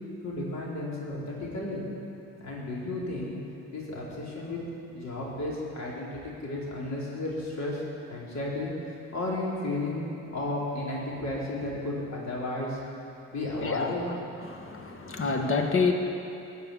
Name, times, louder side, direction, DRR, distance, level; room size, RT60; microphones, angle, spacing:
voice 1, 0.2-1.8 2.4-3.4 3.7-4.6 4.9-7.8 8.1-8.7 9.1-12.8 13.3-14.0, left 2 dB, 60° left, -5 dB, 4.1 m, -33 dB
voice 2, 13.6-13.9 14.4-15.9, left 4 dB, 45° left, 3 dB, 1.7 m, -27 dB
16.0 x 6.6 x 10.0 m, 2.7 s
cardioid pair, 90°, 30 cm